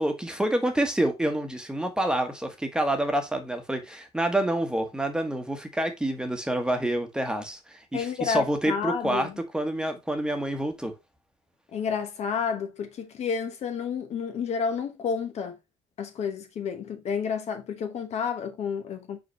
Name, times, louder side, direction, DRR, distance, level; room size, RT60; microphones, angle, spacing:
voice 1, 0.0-10.9, right 1 dB, 5° right, 1.2 m, -27 dB
voice 2, 7.9-9.3 11.7-15.5 16.0-19.2, left 6 dB, 60° left, 1.2 m, -30 dB
5.7 x 5.1 x 3.2 m
cardioid pair, 135°, 13 cm